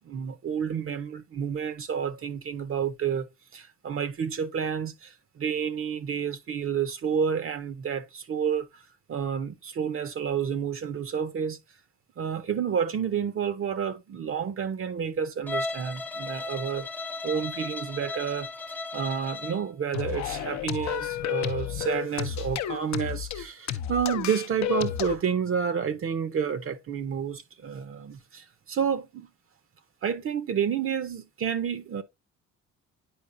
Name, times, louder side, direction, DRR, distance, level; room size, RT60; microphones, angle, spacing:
voice 1, 0.0-3.3 3.5-8.8 9.1-11.6 12.2-16.9 17.2-29.3 30.0-32.0, right 7 dB, 45° right, 0.6 m, -30 dB
Bowed string instrument, 15.5-19.7, left 3 dB, 5° left, 0.4 m, -35 dB
sound 1, 19.9-25.2, left 11 dB, 65° left, 0.6 m, -31 dB
8.6 x 4.5 x 2.5 m
cardioid pair, 90°, 30 cm